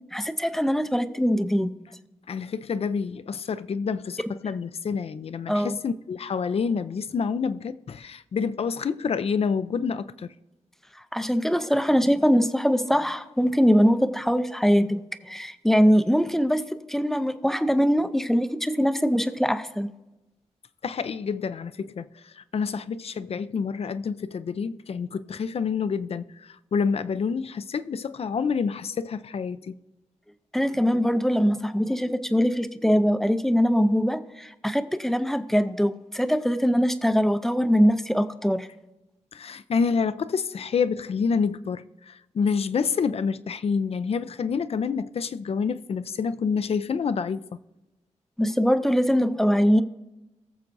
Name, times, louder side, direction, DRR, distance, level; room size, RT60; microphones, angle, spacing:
voice 1, 0.1-1.8 5.5-5.8 11.1-19.9 30.5-38.7 48.4-49.8, equal, 5° left, 0.5 m, -22 dB
voice 2, 2.3-10.3 20.8-29.8 39.3-47.4, left 5 dB, 55° left, 0.4 m, -28 dB
20.5 x 7.2 x 2.6 m
wide cardioid pair, 105°, 12 cm